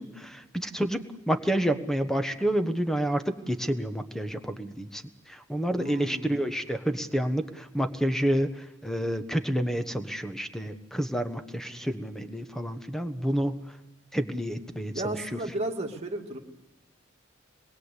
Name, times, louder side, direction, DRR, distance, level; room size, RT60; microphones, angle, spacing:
voice 1, 0.0-13.8 14.1-15.4, right 1 dB, ahead, 8 dB, 1.2 m, -29 dB
voice 2, 5.8-6.4 11.6-11.9 14.9-16.4, right 1 dB, 30° right, 1 dB, 2.4 m, -34 dB
27.0 x 21.5 x 8.3 m, 1.0 s
head